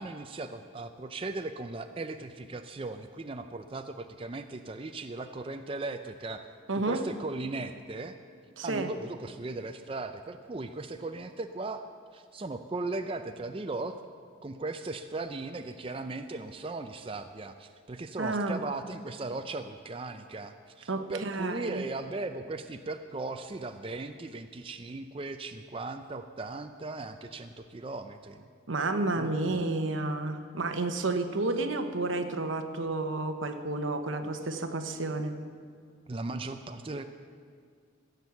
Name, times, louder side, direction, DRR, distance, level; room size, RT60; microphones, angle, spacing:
voice 1, 0.0-6.4 6.7-8.1 8.6-11.8 12.1-14.0 14.4-28.5 29.2-29.6 34.2-34.3 36.1-37.0, right 2 dB, 25° right, 8 dB, 0.4 m, -37 dB
voice 2, 6.7-7.0 8.6-8.9 18.2-18.6 20.9-21.8 28.7-35.4, right 2 dB, 85° right, 7 dB, 1.0 m, -31 dB
15.0 x 8.2 x 7.0 m, 2.1 s
head